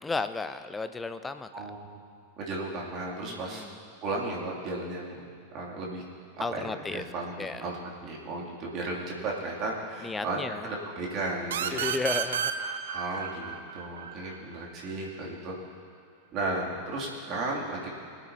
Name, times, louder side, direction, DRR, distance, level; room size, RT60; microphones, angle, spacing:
voice 1, 0.0-1.7 3.3-3.8 6.4-7.0 7.4-7.6 10.0-10.7 11.7-12.5, left 3 dB, 10° left, 11 dB, 0.6 m, -33 dB
voice 2, 2.4-3.7 4.0-5.2 5.5-6.0 6.5-10.4 10.6-11.9 12.9-15.6 16.3-17.9, right 2 dB, 35° right, -3 dB, 2.8 m, -34 dB
sound 1, 11.5-14.9, right 8 dB, 60° right, 0.7 m, -32 dB
22.0 x 9.7 x 2.9 m, 2.4 s
figure-of-eight pair, 90°, 0 cm